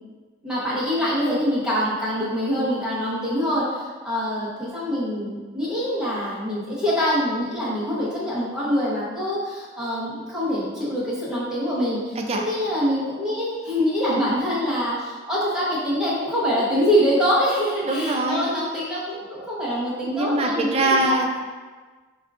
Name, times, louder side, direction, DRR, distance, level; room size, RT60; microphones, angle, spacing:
voice 1, 0.4-21.2, equal, 5° right, -9 dB, 0.9 m, -25 dB
voice 2, 14.0-14.4 17.9-18.5 20.0-21.5, right 2 dB, 35° right, 2 dB, 0.3 m, -23 dB
4.4 x 2.4 x 2.3 m, 1.4 s
head